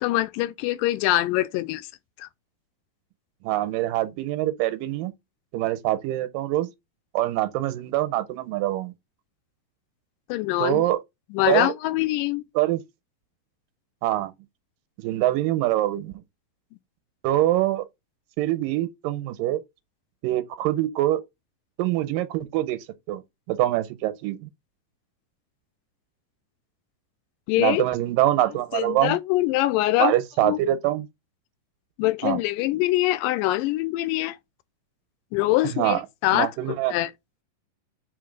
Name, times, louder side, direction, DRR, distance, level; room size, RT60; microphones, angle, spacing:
voice 1, 0.0-1.9 2.2-2.3 10.3-10.9 11.3-12.4 27.5-27.8 28.7-30.2 30.4-30.6 32.0-34.4 35.3-37.1, left 16 dB, 85° left, 2.2 m, -24 dB
voice 2, 3.4-5.1 5.5-6.7 7.1-8.9 10.6-11.0 11.5-11.7 12.6-12.8 14.0-14.3 15.0-16.1 17.2-17.9 18.4-19.6 20.2-21.2 21.8-22.8 23.1-23.2 23.5-24.5 27.6-29.2 30.0-31.1 32.2-32.4 35.8-36.0 36.3-36.9, right 15 dB, 90° right, 2.3 m, -24 dB
5.1 x 3.8 x 5.1 m
omnidirectional pair, 3.9 m